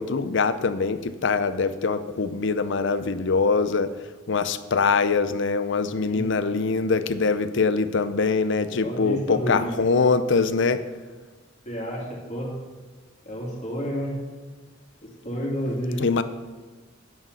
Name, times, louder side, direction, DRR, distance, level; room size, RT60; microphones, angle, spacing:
voice 1, 0.0-3.9 4.3-10.8 16.0-16.2, left 4 dB, 65° left, 12 dB, 0.6 m, -23 dB
voice 2, 8.8-9.9 11.7-12.5 13.2-14.2 15.0-16.0, equal, 40° left, -2 dB, 2.8 m, -30 dB
9.5 x 8.9 x 5.5 m, 1.4 s
head